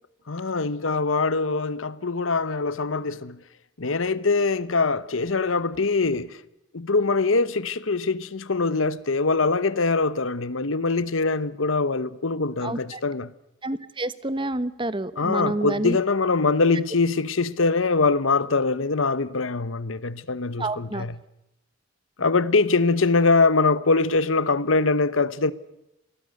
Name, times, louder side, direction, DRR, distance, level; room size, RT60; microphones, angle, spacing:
voice 1, 0.3-3.4 3.8-6.4 6.7-13.3 15.2-21.2 22.2-25.5, left 3 dB, 90° left, 1.1 m, -23 dB
voice 2, 12.6-13.0 13.6-16.0 20.6-21.1, right 2 dB, 25° right, 1.1 m, -28 dB
27.5 x 21.0 x 6.6 m
head